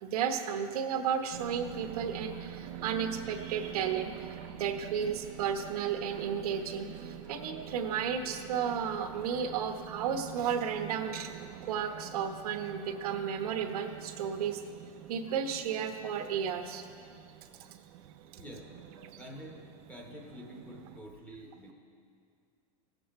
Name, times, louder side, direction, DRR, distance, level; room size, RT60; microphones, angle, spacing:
voice 1, 0.0-4.3 4.5-11.3 11.6-14.6 15.1-16.8 17.6-17.7, right 7 dB, 80° right, 6 dB, 1.1 m, -33 dB
sound 1, 1.3-21.0, right 10 dB, 45° right, 0.5 m, -46 dB
voice 2, 19.2-19.6 19.9-21.7, equal, 10° left, 0 dB, 1.0 m, -47 dB
16.5 x 7.8 x 4.3 m, 2.3 s
supercardioid pair, 160°, 19 cm